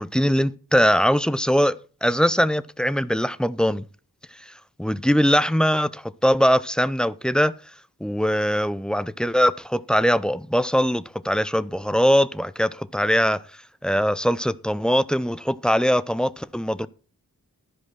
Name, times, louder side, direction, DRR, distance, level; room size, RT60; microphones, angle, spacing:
voice 1, 0.0-3.9 4.5-4.6 4.8-7.6 8.0-13.4 13.8-16.9, equal, ahead, 0.4 m, -21 dB
13.0 x 5.0 x 6.2 m
wide cardioid pair, 55°, 36 cm